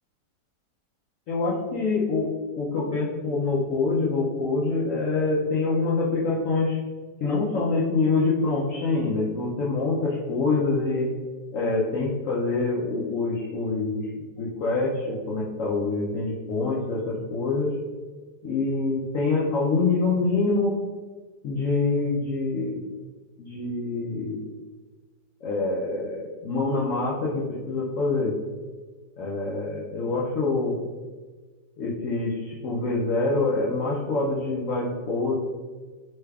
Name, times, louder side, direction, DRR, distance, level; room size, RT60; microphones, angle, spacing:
voice 1, 1.3-6.8 7.2-11.1 11.5-14.1 14.4-17.7 18.4-20.7 21.4-22.8 23.4-24.5 25.4-28.3 29.2-30.7 31.8-35.3, left 3 dB, 90° left, -6 dB, 0.7 m, -25 dB
3.1 x 2.3 x 3.3 m, 1.4 s
omnidirectional pair, 1.9 m